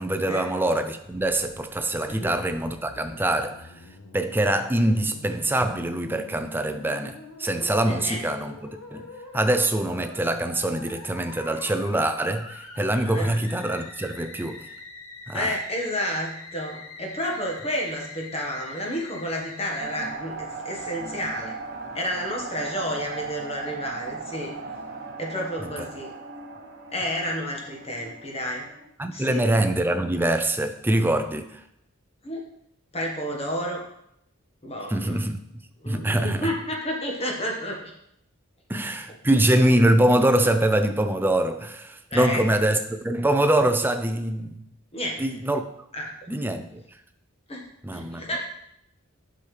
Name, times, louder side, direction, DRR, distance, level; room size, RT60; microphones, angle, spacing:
voice 1, 0.0-3.6 4.1-8.6 8.9-9.1 9.3-14.7 15.3-15.6 29.0-31.6 34.9-36.5 38.7-44.7 45.2-45.6 46.3-46.8 47.8-48.4, right 1 dB, 10° right, 0.4 m, -24 dB
Musical instrument, 1.0-20.1, left 3 dB, 85° left, 1.1 m, -44 dB
voice 2, 7.9-8.2 13.1-13.3 15.3-21.5 21.9-24.5 25.2-26.1 26.9-28.6 29.1-29.4 32.2-32.4 32.9-33.8 34.6-35.2 35.8-37.9 42.1-42.4 44.9-45.2 45.9-46.1 47.5-47.7 47.9-48.4, equal, 30° left, 1.5 m, -30 dB
sound 1, 19.8-28.9, right 4 dB, 50° right, 1.0 m, -38 dB
8.5 x 6.2 x 3.3 m
head